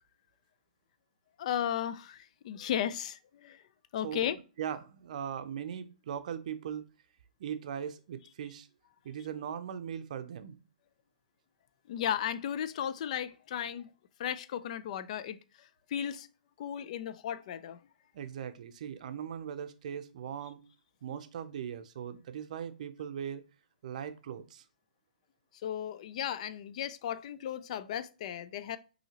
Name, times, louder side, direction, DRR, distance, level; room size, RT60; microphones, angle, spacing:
voice 1, 1.4-3.6 3.9-4.4 11.9-13.9 14.2-16.3 16.6-17.8 25.6-28.8, left 10 dB, 50° left, 0.4 m, -35 dB
voice 2, 4.6-6.8 7.4-8.7 9.0-10.6 18.1-20.6 21.0-23.4 23.8-24.6, right 8 dB, 60° right, 0.5 m, -39 dB
5.6 x 2.8 x 2.8 m
hypercardioid pair, 135°, 5 cm